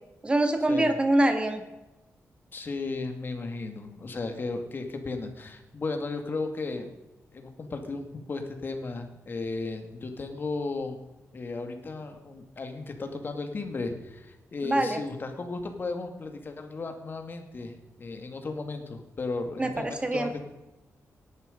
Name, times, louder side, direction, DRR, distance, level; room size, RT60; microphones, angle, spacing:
voice 1, 0.2-1.6 14.6-15.0 19.6-20.3, right 1 dB, 20° right, 7 dB, 1.9 m, -24 dB
voice 2, 2.5-6.9 7.3-11.0 11.3-20.4, left 3 dB, 40° left, 6 dB, 2.2 m, -35 dB
18.5 x 11.0 x 5.2 m, 1.0 s
wide cardioid pair, 155°, 6 cm